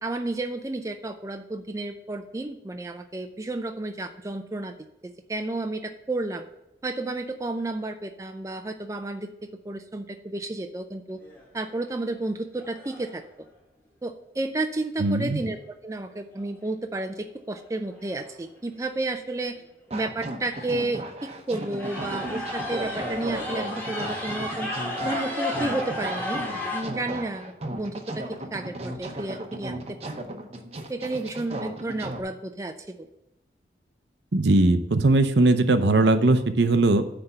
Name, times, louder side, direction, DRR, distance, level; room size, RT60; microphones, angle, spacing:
voice 1, 0.0-4.7 5.0-6.4 6.8-9.3 9.6-11.2 11.5-13.2 14.0-19.6 19.9-24.7 25.0-26.4 26.7-28.2 28.5-30.0 30.9-33.1, right 2 dB, 15° right, 6 dB, 0.4 m, -32 dB
sound 1, 11.2-11.6 12.2-12.3 12.6-13.2 16.4-16.5 17.6-17.7 17.9-18.3 18.7-18.8 19.6-19.7 19.9-20.1 20.5-20.9 21.5-26.8, left 1 dB, 10° left, 1.6 m, -33 dB
voice 2, 15.0-15.4 34.3-37.0, right 2 dB, 70° right, 9 dB, 0.7 m, -19 dB
sound 2, 19.9-32.2, right 1 dB, 35° right, 0.8 m, -36 dB
9.6 x 3.4 x 6.8 m, 0.89 s
head